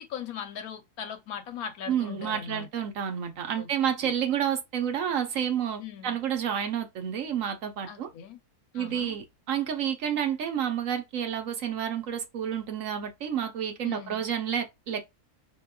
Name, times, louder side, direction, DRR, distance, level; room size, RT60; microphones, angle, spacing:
voice 1, 0.0-2.7 3.6-4.1 5.8-6.2 7.9-8.4 8.7-9.2 13.8-14.3, left 8 dB, 70° left, 1.2 m, -40 dB
voice 2, 1.9-8.1 8.7-15.1, right 9 dB, 60° right, 1.1 m, -30 dB
4.6 x 2.8 x 2.2 m
omnidirectional pair, 1.7 m